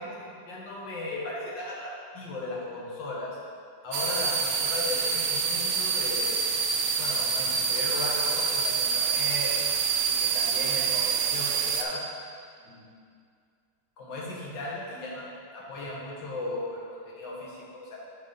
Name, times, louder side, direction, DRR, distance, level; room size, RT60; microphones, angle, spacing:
voice 1, 0.0-3.3 3.8-6.5 7.0-9.5 10.1-12.1 12.6-12.9 14.0-15.2 15.5-18.0, left 2 dB, 65° left, -5 dB, 1.9 m, -36 dB
sound 1, 3.9-11.8, right 6 dB, 85° right, 1.4 m, -26 dB
6.7 x 4.9 x 3.9 m, 2.2 s
omnidirectional pair, 2.2 m